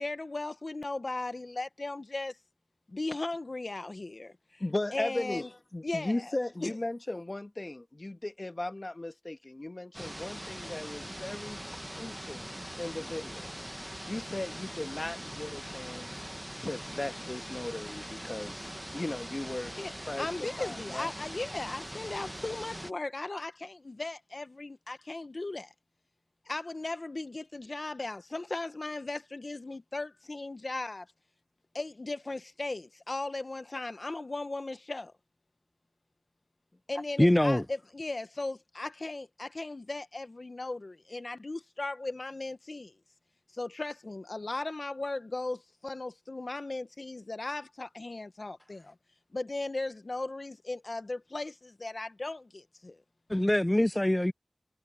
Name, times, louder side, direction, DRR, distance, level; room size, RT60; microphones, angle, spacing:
voice 1, 0.0-2.4 2.9-4.6 4.9-5.5 5.8-6.4 6.6-6.7 19.8-25.7 26.5-31.1 31.7-35.1 36.9-42.9 43.5-48.9 49.3-53.0, left 2 dB, 80° left, 0.8 m, -37 dB
voice 2, 4.6-12.4 12.8-13.5 14.1-16.1 16.6-19.7 20.0-21.1, left 2 dB, 55° left, 1.5 m, -37 dB
sound 1, 9.9-22.9, equal, 15° right, 0.9 m, -42 dB
voice 3, 37.2-37.6 53.3-54.3, left 1 dB, 25° left, 0.4 m, -24 dB
wide cardioid pair, 45°, 0 cm